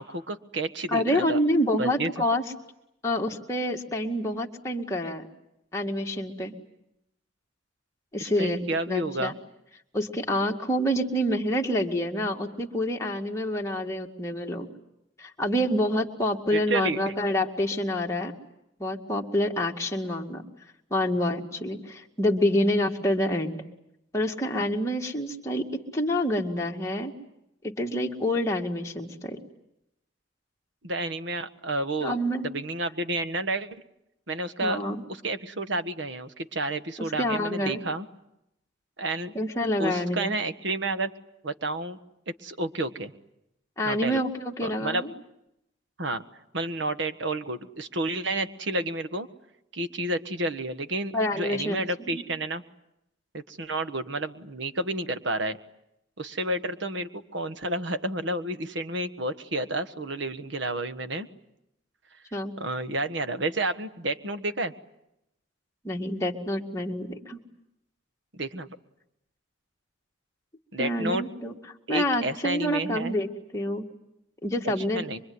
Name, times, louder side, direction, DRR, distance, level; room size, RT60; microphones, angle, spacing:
voice 1, 0.0-1.4 1.8-2.1 8.2-9.3 16.5-17.1 30.8-32.2 32.4-33.7 34.3-34.8 35.1-38.1 39.0-39.3 39.8-41.1 41.4-42.0 42.3-43.1 43.8-44.2 44.6-45.0 46.0-46.2 46.5-49.3 49.7-52.6 53.3-55.6 56.2-61.3 62.6-64.7 68.3-68.7 70.7-71.2 71.9-73.2 74.9-75.2, right 2 dB, 65° right, 10 dB, 1.5 m, -30 dB
voice 2, 0.9-2.4 3.0-5.3 5.7-6.5 8.1-9.3 9.9-14.7 15.2-18.3 18.8-20.4 20.9-23.6 24.1-27.1 27.8-29.4 32.0-32.5 34.6-35.0 37.2-37.8 39.3-40.3 43.8-45.1 51.1-51.8 52.1-52.2 62.3-62.5 65.8-67.4 70.8-71.5 71.9-73.9 74.4-75.1, left 1 dB, 15° left, 0 dB, 2.1 m, -27 dB
24.5 x 24.5 x 9.6 m, 0.83 s
head